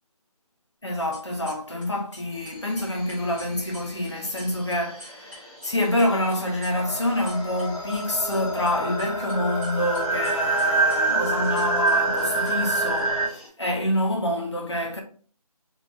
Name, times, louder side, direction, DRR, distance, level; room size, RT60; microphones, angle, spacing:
voice 1, 0.8-15.0, left 1 dB, 45° left, 0.7 m, -27 dB
sound 1, 0.9-7.6 7.9-9.3 9.6-13.3, equal, 15° right, 1.3 m, -46 dB
sound 2, 2.3-13.5, left 1 dB, 20° left, 1.4 m, -47 dB
sound 3, 6.8-13.3, right 3 dB, 35° right, 1.8 m, -26 dB
4.3 x 2.8 x 2.4 m
figure-of-eight pair, 180°, 20 cm